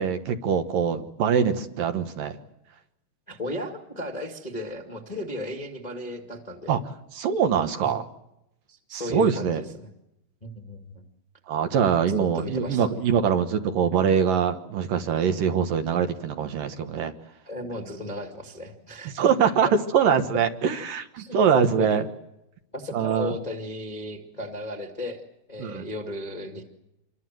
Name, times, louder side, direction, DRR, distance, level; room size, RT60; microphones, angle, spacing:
voice 1, 0.0-2.4 6.7-6.8 7.1-8.1 8.9-9.6 11.5-17.1 19.1-22.0 22.9-23.3 25.6-25.8, right 7 dB, 65° right, 7 dB, 2.7 m, -23 dB
voice 2, 3.3-6.8 7.8-8.0 8.7-9.9 10.4-11.0 12.1-12.9 17.4-19.5 21.2-22.1 22.7-25.2 25.5-26.6, left 1 dB, 15° left, 2 dB, 1.5 m, -35 dB
27.0 x 23.0 x 7.7 m, 0.86 s
omnidirectional pair, 4.7 m